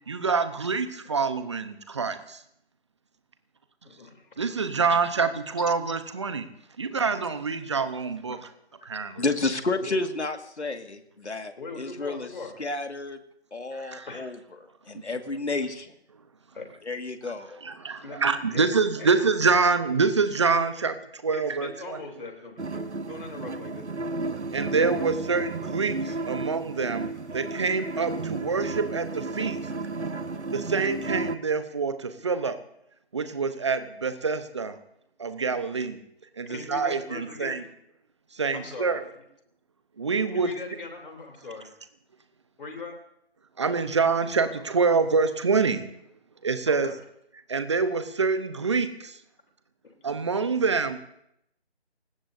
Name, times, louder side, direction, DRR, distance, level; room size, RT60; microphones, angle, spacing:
voice 1, 0.1-2.4 4.4-6.5 6.8-8.4 8.8-9.2 13.7-14.1 17.6-22.0 24.5-29.6 30.5-32.6 33.1-34.8 35.2-36.0 36.4-37.6 38.3-39.0 40.0-40.5 43.6-45.9 46.4-46.9 47.5-49.2 50.0-51.1, right 4 dB, 25° right, 10 dB, 0.9 m, -26 dB
voice 2, 3.8-4.3 8.3-8.4 9.8-10.0 11.6-12.5 14.1-14.2 16.5-16.7 18.0-18.2 18.5-18.6 19.0-19.1 21.3-24.2 32.1-32.2 36.4-37.6 38.5-39.2 40.3-41.7 42.6-43.0 46.7-46.9 49.8-49.9, left 3 dB, 55° left, 3 dB, 3.3 m, -40 dB
voice 3, 9.2-12.3 12.6-13.2 13.5-14.4 14.9-15.9 16.9-17.6, left 3 dB, 85° left, 6 dB, 2.0 m, -31 dB
sound 1, 22.6-31.3, right 3 dB, 90° right, 1.1 m, -33 dB
29.5 x 17.0 x 2.7 m, 0.76 s
figure-of-eight pair, 160°, 33 cm